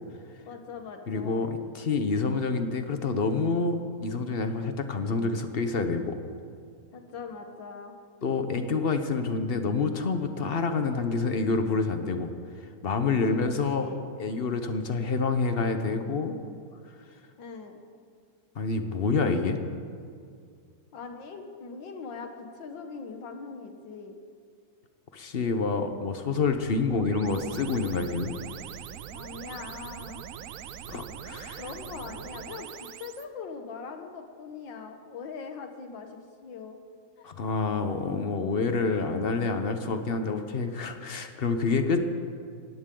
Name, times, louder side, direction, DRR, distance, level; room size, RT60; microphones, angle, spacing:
voice 1, 0.5-1.5 6.9-7.9 13.3-14.1 17.4-17.8 20.9-24.1 29.1-30.2 31.6-36.8 37.2-37.3, left 5 dB, 75° left, 5 dB, 1.9 m, -41 dB
voice 2, 1.1-6.2 8.2-12.3 12.8-13.9 14.2-16.4 18.5-19.6 25.1-28.4 30.9-31.6 37.2-42.0, left 4 dB, 50° left, 7 dB, 0.7 m, -27 dB
sound 1, 26.5-33.3, right 9 dB, 70° right, 0.8 m, -42 dB
19.0 x 14.0 x 3.8 m, 2.2 s
omnidirectional pair, 2.0 m